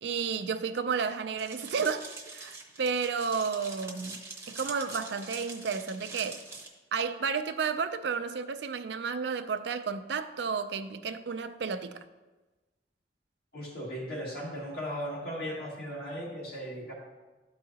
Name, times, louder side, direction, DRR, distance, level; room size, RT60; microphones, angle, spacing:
voice 1, 0.0-4.2 4.5-6.4 6.9-12.0, right 5 dB, 75° right, 0.4 m, -32 dB
sound 1, 1.4-6.7, right 3 dB, 15° right, 0.8 m, -44 dB
voice 2, 13.5-16.9, equal, 60° left, 2.3 m, -37 dB
12.5 x 4.7 x 2.8 m
head